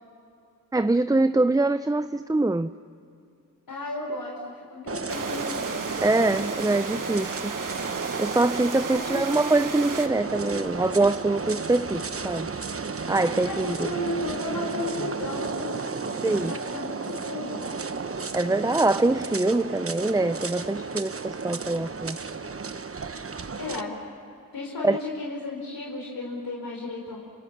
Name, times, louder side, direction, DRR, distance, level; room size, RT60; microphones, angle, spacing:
voice 1, 0.7-2.7 6.0-7.5 8.2-12.5 13.1-13.9 16.2-16.5 18.3-22.2 24.8-25.0, right 2 dB, 10° right, 12 dB, 0.5 m, -24 dB
voice 2, 3.7-5.9 8.9-9.2 13.4-17.7 23.6-24.0 24.5-27.2, left 2 dB, 80° left, -1 dB, 4.4 m, -34 dB
sound 1, 4.9-23.8, right 4 dB, 40° right, 1.1 m, -33 dB
sound 2, 5.1-10.1, right 5 dB, 65° right, 1.6 m, -35 dB
27.5 x 27.0 x 7.4 m, 2.6 s
wide cardioid pair, 70°, 34 cm